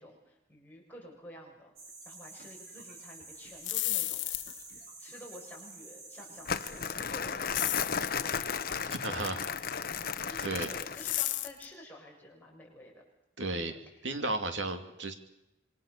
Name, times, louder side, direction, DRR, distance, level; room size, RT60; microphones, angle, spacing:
voice 1, 0.0-1.7 2.0-4.2 4.7-9.0 10.2-12.9 13.4-14.0, left 1 dB, 10° left, -3 dB, 6.8 m, -51 dB
sound 1, 1.8-6.9, right 3 dB, 50° right, 5.6 m, -49 dB
sound 2, 3.5-4.7 7.5-8.1 11.0-11.7, left 15 dB, 80° left, 1.3 m, -32 dB
Crumpling crinkling, 6.5-11.3, left 6 dB, 50° left, 1.0 m, -34 dB
voice 2, 9.0-9.4 10.4-10.7 13.4-13.8 14.0-15.1, right 2 dB, 75° right, 6 dB, 2.9 m, -33 dB
26.5 x 24.0 x 6.9 m, 0.91 s
head